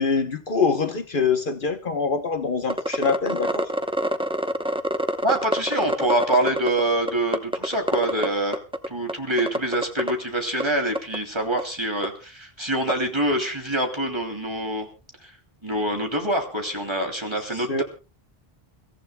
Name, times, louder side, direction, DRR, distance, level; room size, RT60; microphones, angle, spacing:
voice 1, 0.0-3.7 17.5-17.8, left 4 dB, 55° left, 1.1 m, -24 dB
sound 1, 2.7-6.8 7.1-8.3 8.5-9.1 9.4-10.1 10.6-10.7 10.9-11.2 11.6-11.7 12.0-12.1 12.9-13.0, equal, 5° right, 0.6 m, -25 dB
voice 2, 5.2-8.6 8.9-14.9 15.2-15.3 15.6-17.8, right 1 dB, 25° right, 2.8 m, -25 dB
29.5 x 14.5 x 2.2 m
omnidirectional pair, 1.0 m